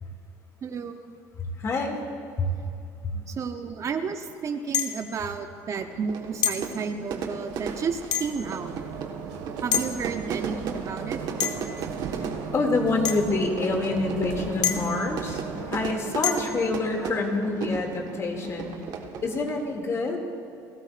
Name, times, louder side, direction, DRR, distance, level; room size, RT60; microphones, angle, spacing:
voice 1, 0.6-1.0 3.3-8.7 9.6-11.2, right 5 dB, 40° right, 7 dB, 0.8 m, -32 dB
voice 2, 1.4-2.0 2.4-2.6 3.0-3.3 6.7-6.8 12.1-20.2, left 3 dB, 35° left, 2 dB, 2.5 m, -27 dB
sound 1, 4.7-5.1 6.4-6.7 8.1-8.5 9.7-9.9 11.4-11.8 13.0-13.3 14.6-15.0 16.2-16.6, left 9 dB, 55° left, 1.2 m, -27 dB
Fire / Fireworks, 5.8-19.8, right 6 dB, 60° right, 1.5 m, -36 dB
sound 2, 7.5-15.9, right 7 dB, 85° right, 1.7 m, -38 dB
28.5 x 13.5 x 2.5 m, 2.6 s
supercardioid pair, 100°, 8 cm